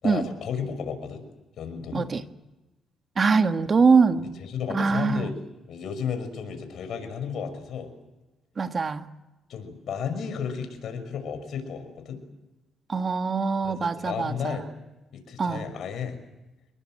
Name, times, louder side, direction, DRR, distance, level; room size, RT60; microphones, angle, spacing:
voice 1, 0.0-1.2 1.6-2.1 4.4-5.3 5.7-7.9 9.5-12.2 13.6-14.7 15.1-16.2, left 7 dB, 70° left, 8 dB, 6.0 m, -33 dB
voice 2, 3.2-4.3 4.7-5.3 8.6-9.1 12.9-14.6 15.4-15.7, right 5 dB, 40° right, 8 dB, 1.5 m, -23 dB
27.5 x 22.0 x 7.7 m, 1.0 s
cardioid pair, 90°, 0 cm